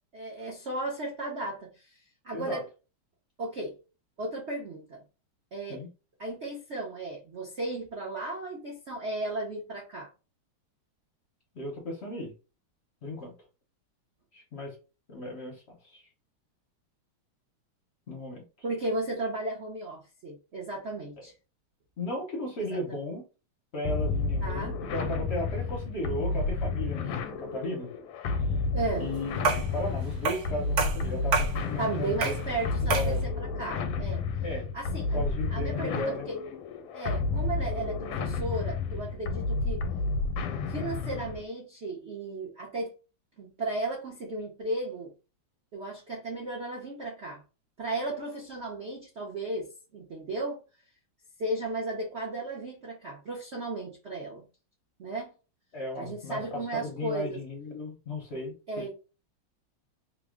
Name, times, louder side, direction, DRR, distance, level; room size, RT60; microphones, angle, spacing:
voice 1, 0.1-2.6 3.4-3.8 4.2-5.0 5.5-5.8 6.2-10.1 18.6-21.3 22.6-22.8 24.4-24.7 27.0-27.1 28.7-29.1 31.8-34.2 34.7-36.4 36.9-39.9 40.7-42.9 43.4-45.1 45.7-47.4 47.8-50.6 51.4-54.5 55.0-55.3 56.0-57.4 58.7-58.9, right 2 dB, 75° right, 0.6 m, -35 dB
voice 2, 11.5-12.3 13.0-13.3 14.3-14.7 15.1-16.0 18.1-18.4 22.0-23.2 23.7-27.9 28.4-28.5 29.0-29.4 29.7-32.4 32.8-33.2 34.4-34.7 35.1-36.3 55.7-58.9, left 1 dB, 55° left, 0.7 m, -35 dB
sound 1, 23.8-41.5, left 3 dB, 85° left, 1.5 m, -31 dB
sound 2, 29.4-29.8 30.3-30.5 30.8-31.6 32.2-32.5 32.9-33.2, right 4 dB, 55° right, 1.4 m, -28 dB
3.5 x 2.0 x 3.6 m
omnidirectional pair, 2.4 m